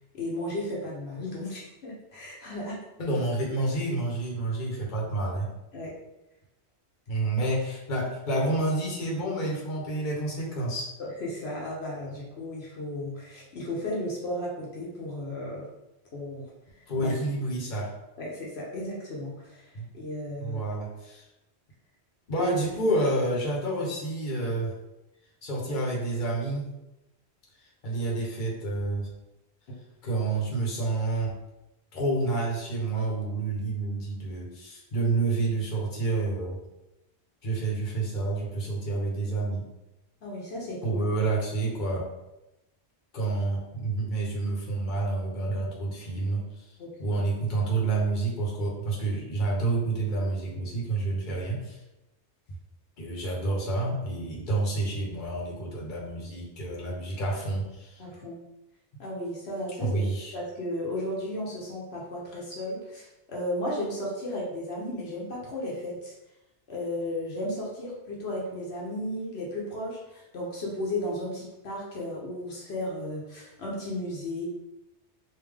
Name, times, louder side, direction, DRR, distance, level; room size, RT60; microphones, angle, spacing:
voice 1, 0.1-2.8 5.7-5.9 11.0-15.7 16.1-16.5 16.8-17.1 18.2-20.6 22.4-22.5 40.2-41.0 46.8-47.2 58.0-58.4 59.0-60.0 60.3-66.1 66.7-74.5, left 1 dB, 70° left, -4 dB, 1.1 m, -34 dB
voice 2, 3.0-5.5 7.1-10.9 16.9-17.9 19.7-19.8 20.4-21.3 22.3-24.7 25.4-26.7 27.8-29.1 30.0-31.3 31.9-36.6 37.4-39.6 40.8-42.0 43.1-46.4 47.0-51.8 53.0-58.0 59.8-60.3, right 2 dB, 50° left, -3 dB, 1.0 m, -29 dB
3.5 x 2.7 x 3.3 m, 0.93 s
omnidirectional pair, 1.1 m